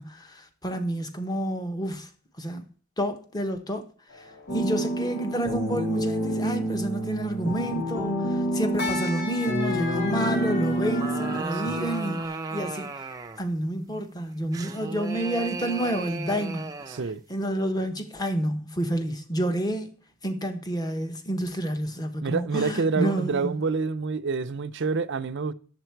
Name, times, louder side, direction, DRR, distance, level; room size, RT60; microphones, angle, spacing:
voice 1, 0.0-2.1 2.4-2.6 3.0-3.8 4.2-4.3 4.5-12.9 13.4-16.7 17.3-19.9 20.2-23.6, right 1 dB, 20° left, 1.0 m, -29 dB
sound 1, 4.1-12.3, left 3 dB, 45° left, 1.9 m, -39 dB
sound 2, 4.5-11.4, equal, 85° left, 2.2 m, -28 dB
sound 3, 10.7-13.5 14.5-17.1, right 3 dB, 15° right, 0.6 m, -35 dB
voice 2, 11.5-11.9 14.5-14.6 16.9-17.2 22.2-25.5, right 4 dB, 55° right, 0.6 m, -28 dB
9.9 x 7.3 x 4.5 m
head